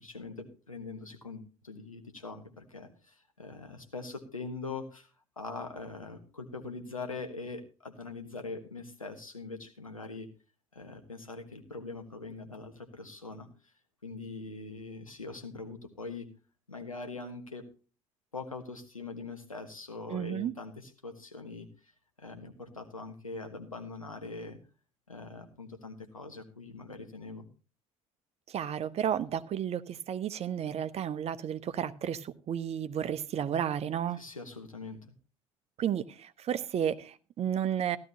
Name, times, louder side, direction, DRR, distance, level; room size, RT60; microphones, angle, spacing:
voice 1, 0.0-5.1 5.4-10.3 10.7-13.5 14.0-16.3 16.7-17.7 18.3-21.9 22.2-24.6 25.1-27.5 34.2-35.0, left 3 dB, 90° left, 6 dB, 1.3 m, -42 dB
voice 2, 20.1-20.5 28.5-34.2 35.8-38.0, right 9 dB, 40° right, 14 dB, 0.8 m, -32 dB
15.5 x 11.5 x 2.8 m, 0.36 s
figure-of-eight pair, 60°, 17 cm